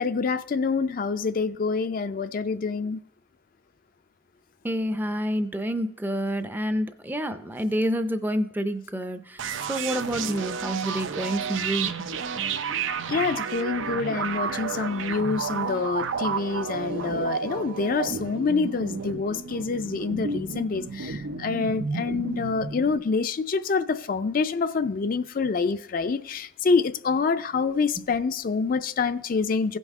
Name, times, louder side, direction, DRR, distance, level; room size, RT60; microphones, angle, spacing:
voice 1, 0.0-3.0 13.1-29.8, left 4 dB, 45° left, 0.4 m, -26 dB
voice 2, 4.6-9.4 9.7-11.9, equal, 10° right, 0.5 m, -28 dB
sound 1, 9.4-23.0, right 5 dB, 85° right, 0.6 m, -31 dB
16.0 x 5.4 x 3.6 m
head